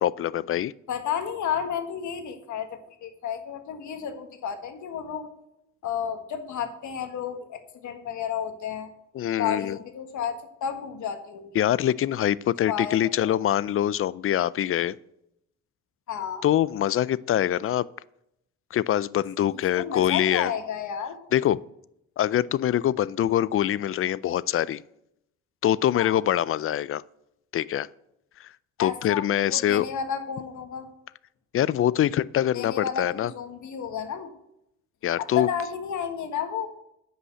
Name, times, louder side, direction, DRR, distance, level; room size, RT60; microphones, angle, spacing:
voice 1, 0.0-0.7 9.1-9.8 11.5-15.0 16.4-17.9 18.7-20.5 21.3-21.6 22.2-24.8 25.6-27.0 27.5-27.9 28.4-28.5 28.8-29.9 31.5-33.3 35.0-35.5, left 11 dB, 45° left, 20 dB, 0.4 m, -24 dB
voice 2, 0.9-5.3 5.8-8.9 9.4-11.6 12.7-13.4 16.1-16.4 19.5-21.2 25.9-26.2 28.8-30.9 32.5-34.3 35.2-36.7, left 8 dB, 75° left, 7 dB, 1.5 m, -32 dB
9.8 x 5.6 x 8.0 m, 0.80 s
cardioid pair, 90°, 30 cm